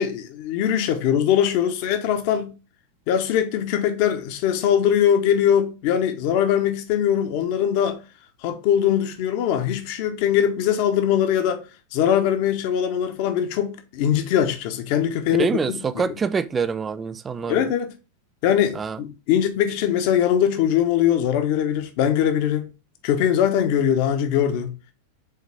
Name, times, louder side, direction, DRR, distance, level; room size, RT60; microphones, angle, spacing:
voice 1, 0.0-2.5 3.1-8.0 8.4-11.6 11.9-15.8 16.1-16.2 17.5-17.9 18.4-22.7 23.0-24.7, left 9 dB, 45° left, 1.2 m, -21 dB
voice 2, 15.4-17.6 18.7-19.0, right 5 dB, 20° right, 0.5 m, -25 dB
7.0 x 4.1 x 3.5 m
figure-of-eight pair, 90°, 0 cm